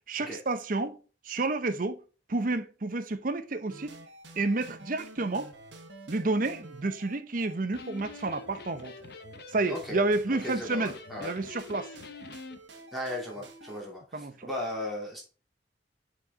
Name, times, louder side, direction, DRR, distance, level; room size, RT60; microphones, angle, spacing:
voice 1, 0.1-1.0 1.2-2.0 2.3-4.0 4.4-5.5 6.1-9.0 9.5-10.9 11.2-11.9 14.1-14.5, right 2 dB, 50° right, 0.7 m, -30 dB
sound 1, 3.7-13.8, right 2 dB, 90° right, 1.3 m, -50 dB
Electric guitar, 7.6-12.6, left 3 dB, 60° left, 0.8 m, -47 dB
voice 2, 9.7-10.0 10.3-11.3 12.9-15.2, left 1 dB, ahead, 2.9 m, -36 dB
7.0 x 4.6 x 3.7 m
head